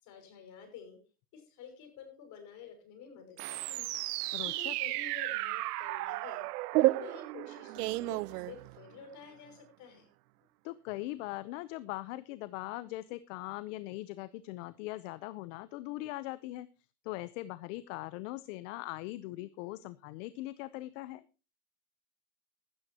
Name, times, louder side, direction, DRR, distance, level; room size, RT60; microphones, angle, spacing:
voice 1, 0.0-1.0 1.3-3.9 4.4-6.5 6.8-10.1, left 6 dB, 40° left, 5 dB, 5.9 m, -50 dB
sound 1, 3.4-9.0, right 19 dB, 85° right, 0.7 m, -33 dB
voice 2, 4.3-4.8 10.6-16.7 17.0-21.2, left 18 dB, 55° left, 16 dB, 0.8 m, -40 dB
15.5 x 13.0 x 2.8 m, 0.31 s
supercardioid pair, 155°, 45 cm